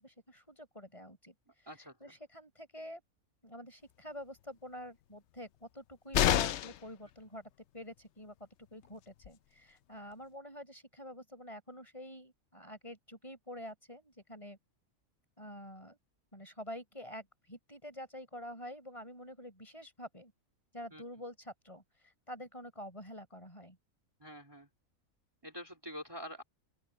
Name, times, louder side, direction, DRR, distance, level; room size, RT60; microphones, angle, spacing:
voice 1, 0.0-3.0 3.4-14.6 15.4-16.0 16.3-20.3 20.7-23.8, equal, 20° left, 6.3 m, -48 dB
voice 2, 1.7-2.0 20.9-21.0 24.2-24.7 25.4-26.4, equal, 15° right, 3.3 m, -46 dB
sound 1, 6.1-6.9 8.8-8.9 9.2-9.3, left 12 dB, 65° left, 0.7 m, -28 dB
open air
omnidirectional pair, 1.5 m